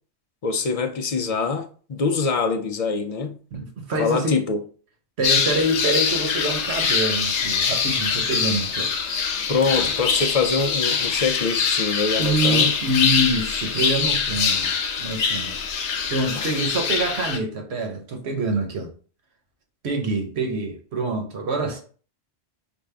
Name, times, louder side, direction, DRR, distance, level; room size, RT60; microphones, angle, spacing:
voice 1, 0.4-3.4 4.0-4.6 9.5-12.7 16.3-16.4, left 4 dB, 55° left, 0.4 m, -24 dB
voice 2, 3.5-4.4 5.2-8.9 12.2-14.7 15.0-15.6 16.1-18.9 19.8-21.8, right 2 dB, 70° right, 1.2 m, -26 dB
sound 1, 5.2-17.4, left 6 dB, 90° left, 1.0 m, -23 dB
5.2 x 2.5 x 3.4 m
omnidirectional pair, 1.1 m